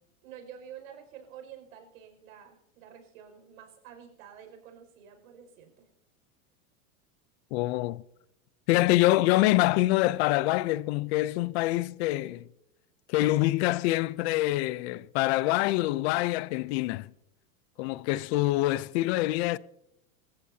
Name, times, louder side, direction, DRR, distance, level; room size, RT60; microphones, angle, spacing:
voice 1, 0.2-5.9, right 8 dB, 80° right, 5.7 m, -49 dB
voice 2, 7.5-8.0 8.7-12.5 13.1-17.1 17.8-19.6, left 17 dB, 50° left, 0.5 m, -25 dB
28.0 x 15.0 x 2.8 m
supercardioid pair, 150°, 42 cm